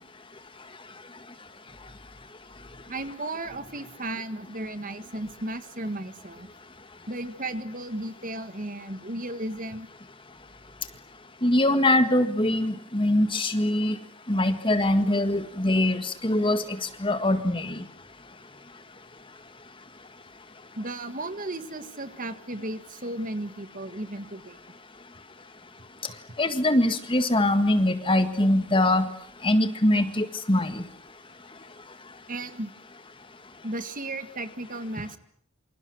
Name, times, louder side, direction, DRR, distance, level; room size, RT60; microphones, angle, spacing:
voice 1, 2.9-6.5 7.1-9.9 20.8-24.6 32.3-32.7 33.6-35.2, right 1 dB, 40° right, 11 dB, 1.8 m, -34 dB
voice 2, 11.4-14.0 14.3-17.8 26.4-29.1 29.4-30.8, left 1 dB, 25° left, 10 dB, 1.8 m, -23 dB
28.0 x 27.0 x 6.4 m, 0.63 s
head